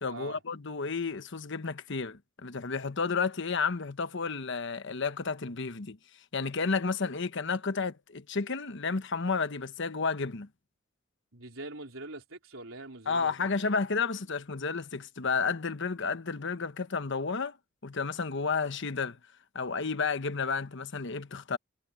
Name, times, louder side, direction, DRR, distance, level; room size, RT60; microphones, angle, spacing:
voice 1, 0.0-6.0 6.3-10.5 13.1-17.6 17.8-19.2 19.5-21.6, left 4 dB, 65° left, 1.1 m, -31 dB
voice 2, 11.3-13.3, right 2 dB, 80° right, 4.0 m, -43 dB
head